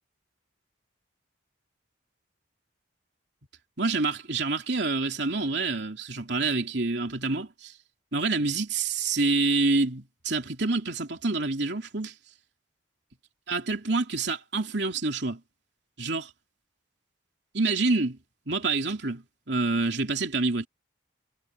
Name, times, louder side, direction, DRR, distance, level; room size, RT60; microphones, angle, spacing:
voice 1, 3.8-7.7 8.1-12.1 13.5-15.4 16.0-16.3 17.5-18.2 18.5-20.7, right 3 dB, 65° right, 3.0 m, -27 dB
head